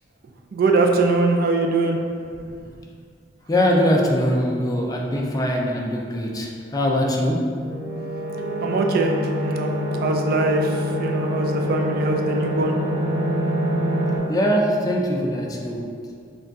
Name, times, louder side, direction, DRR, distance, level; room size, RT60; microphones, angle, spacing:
voice 1, 0.5-2.0 8.6-9.2 9.4-9.7 10.0-12.7, right 3 dB, 55° right, 2 dB, 0.3 m, -21 dB
voice 2, 3.5-7.4 14.3-15.8, equal, 20° left, 0 dB, 0.4 m, -22 dB
sound 1, 7.5-14.2, equal, 35° right, 0.9 m, -25 dB
6.0 x 2.3 x 2.6 m, 2.2 s
head